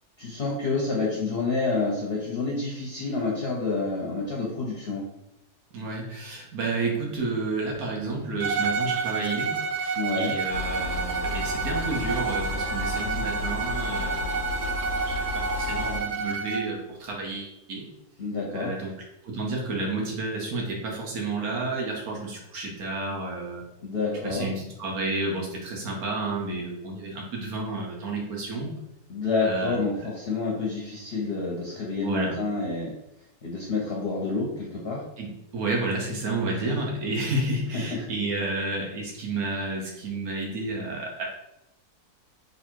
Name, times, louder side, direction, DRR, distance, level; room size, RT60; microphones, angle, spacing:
voice 1, 0.2-5.0 10.0-10.3 18.2-18.7 23.8-24.5 29.1-32.9 33.4-35.0 36.6-36.8 37.7-38.1, left 3 dB, 50° left, -3 dB, 0.9 m, -28 dB
voice 2, 5.7-14.7 15.0-17.9 18.5-18.9 19.2-23.6 24.2-28.8 29.4-30.1 32.0-32.3 35.2-41.3, right 2 dB, 70° right, -1 dB, 1.5 m, -31 dB
Bowed string instrument, 8.4-16.7, right 5 dB, 90° right, 1.2 m, -29 dB
sound 1, 10.5-16.0, left 4 dB, 85° left, 1.2 m, -33 dB
3.9 x 2.8 x 4.4 m, 0.87 s
omnidirectional pair, 1.6 m